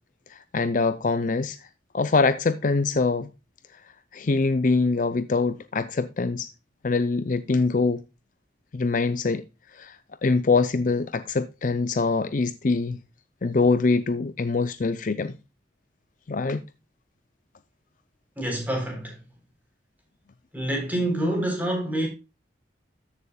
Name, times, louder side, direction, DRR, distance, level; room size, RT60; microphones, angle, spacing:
voice 1, 0.3-1.6 1.9-3.3 4.1-6.5 6.8-8.0 8.7-9.4 9.7-10.0 10.2-13.0 13.4-15.4 16.3-16.6, left 3 dB, 45° left, 0.5 m, -24 dB
voice 2, 18.4-19.2 20.5-22.1, right 1 dB, 10° right, 3.9 m, -27 dB
14.0 x 6.8 x 2.3 m
head